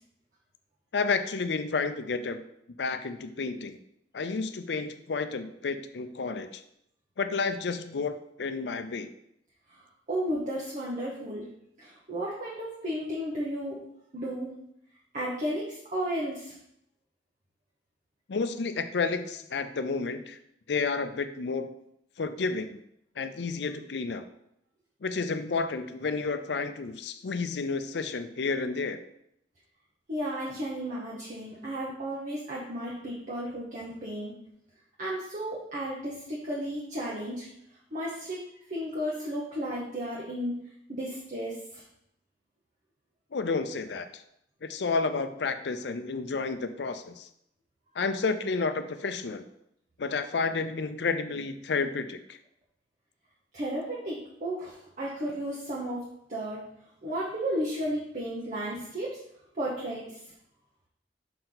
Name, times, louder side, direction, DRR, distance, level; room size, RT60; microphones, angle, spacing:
voice 1, 0.9-2.4 2.8-3.8 4.1-6.6 7.2-9.1 18.3-20.4 20.7-21.7 22.2-22.8 23.2-24.2 25.0-29.0 43.3-44.2 44.6-47.3 48.0-49.4 50.0-52.4, left 4 dB, 70° left, 10 dB, 0.5 m, -31 dB
voice 2, 10.1-11.4 11.8-13.8 14.1-14.6 15.1-16.6 30.1-34.3 35.0-37.5 37.9-38.4 38.7-40.6 40.9-41.8 53.5-56.6 57.0-59.2 59.5-60.2, equal, 45° right, -5 dB, 1.1 m, -33 dB
6.5 x 4.4 x 3.9 m, 0.76 s
head